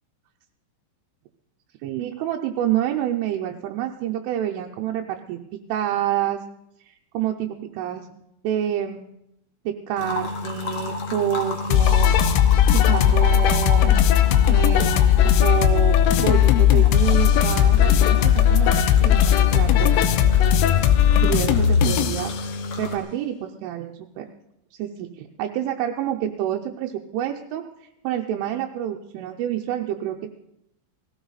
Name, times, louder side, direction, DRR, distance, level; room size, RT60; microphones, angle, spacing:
voice 1, 1.8-6.4 6.8-8.1 8.4-9.1 9.7-12.2 12.7-14.0 14.5-19.9 21.2-22.5 22.8-24.3 24.8-27.7 28.0-30.3, right 11 dB, 85° right, 1 dB, 3.3 m, -28 dB
sound 1, 10.0-23.0, left 3 dB, 55° left, 1.9 m, -32 dB
sound 2, 11.7-22.3, left 10 dB, 85° left, 3.3 m, -17 dB
18.5 x 15.0 x 4.1 m, 0.80 s
omnidirectional pair, 5.6 m